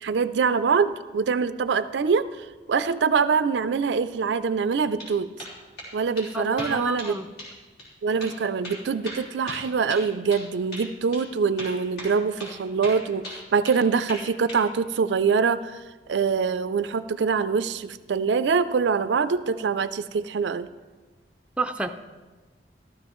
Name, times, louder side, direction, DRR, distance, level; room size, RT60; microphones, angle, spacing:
voice 1, 0.0-2.2 2.7-5.3 5.9-7.2 8.0-15.8 16.1-20.7, right 5 dB, 75° right, 13 dB, 0.4 m, -24 dB
sound 1, 4.7-5.1 5.4-5.9 6.2-6.3 6.6-7.1 7.4-7.5 7.8-7.9 8.2-8.4 8.6-10.5 10.7-10.9 11.1-11.2 11.6-12.6 12.8-13.8 14.1-14.6, equal, 65° left, 3.6 m, -38 dB
voice 2, 6.3-7.3 21.6-21.9, right 2 dB, 5° right, 4 dB, 0.5 m, -29 dB
15.0 x 12.5 x 3.0 m, 1.3 s
head